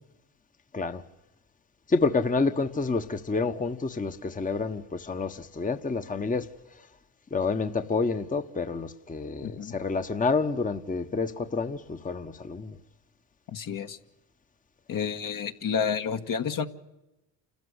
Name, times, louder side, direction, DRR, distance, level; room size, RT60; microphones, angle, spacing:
voice 1, 1.9-6.5 7.3-12.8, left 4 dB, 20° left, 1.2 m, -28 dB
voice 2, 9.4-9.7 13.5-14.0 14.9-16.7, left 7 dB, 50° left, 1.6 m, -30 dB
28.5 x 14.0 x 8.1 m
supercardioid pair, 65°, 42 cm